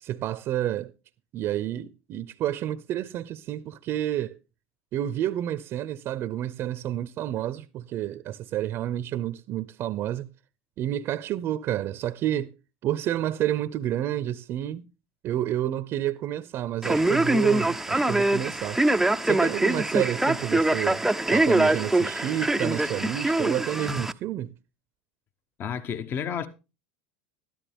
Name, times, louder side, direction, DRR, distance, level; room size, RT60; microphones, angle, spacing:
voice 1, 0.0-0.9 1.3-4.4 4.9-10.3 10.8-12.5 12.8-14.8 15.2-18.8 19.2-21.0 21.3-24.5, right 12 dB, 45° right, 0.7 m, -29 dB
Male speech man speaking, 16.8-24.1, right 2 dB, 5° right, 0.6 m, -24 dB
voice 2, 25.6-26.5, left 7 dB, 40° left, 1.2 m, -31 dB
13.0 x 12.0 x 3.6 m
hypercardioid pair, 100°, 6 cm